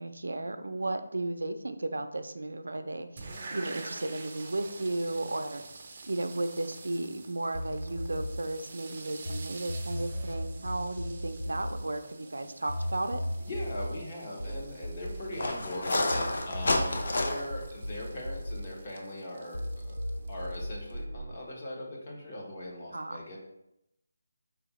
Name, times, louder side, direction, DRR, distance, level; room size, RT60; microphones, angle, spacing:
voice 1, 0.0-5.7 6.0-13.2 22.9-23.2, right 2 dB, 85° right, 8 dB, 0.5 m, -34 dB
sound 1, 3.2-21.0, right 3 dB, 35° right, 0.6 m, -48 dB
sound 2, 7.5-9.4 9.7-16.2 16.5-19.2 19.5-21.2, equal, 80° left, 0.9 m, -36 dB
sound 3, 13.1-13.2 13.6-13.7 15.3-17.6, left 2 dB, 55° left, 0.6 m, -29 dB
voice 2, 13.4-20.0 20.3-23.4, left 1 dB, 30° left, -2 dB, 1.1 m, -40 dB
4.6 x 3.4 x 3.0 m, 0.83 s
figure-of-eight pair, 170°, 0 cm